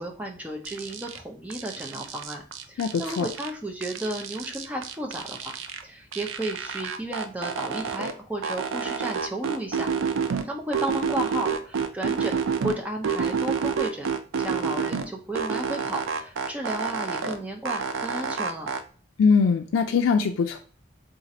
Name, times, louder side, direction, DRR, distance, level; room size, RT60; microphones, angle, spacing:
voice 1, 0.0-5.5 5.8-9.9 10.4-12.4 12.6-14.1 14.4-18.7, right 1 dB, 5° right, 1 dB, 0.4 m, -33 dB
sound 1, 0.7-1.2 1.5-3.5 3.8-5.8 6.1-8.1 8.4-10.4 10.7-12.8 13.0-15.1 15.3-17.4 17.7-18.8, right 6 dB, 90° right, 0.4 m, -29 dB
voice 2, 2.8-3.3 19.2-20.6, left 5 dB, 90° left, 3 dB, 0.3 m, -22 dB
2.6 x 2.4 x 4.1 m, 0.40 s
head